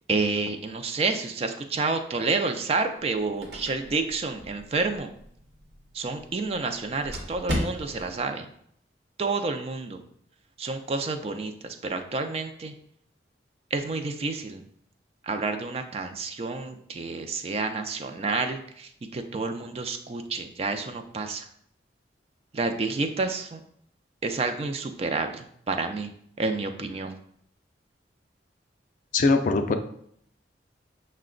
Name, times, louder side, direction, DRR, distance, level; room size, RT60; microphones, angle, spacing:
voice 1, 0.1-5.1 5.9-8.5 9.2-10.0 10.6-12.7 13.7-14.6 15.2-21.4 22.5-23.6 24.2-26.1 26.4-27.2, right 3 dB, 35° right, 7 dB, 0.4 m, -29 dB
sound 1, 3.0-8.2, left 1 dB, 75° right, 1.0 m, -37 dB
voice 2, 29.1-29.7, left 3 dB, 45° left, 7 dB, 0.4 m, -21 dB
5.8 x 2.2 x 3.7 m, 0.68 s
head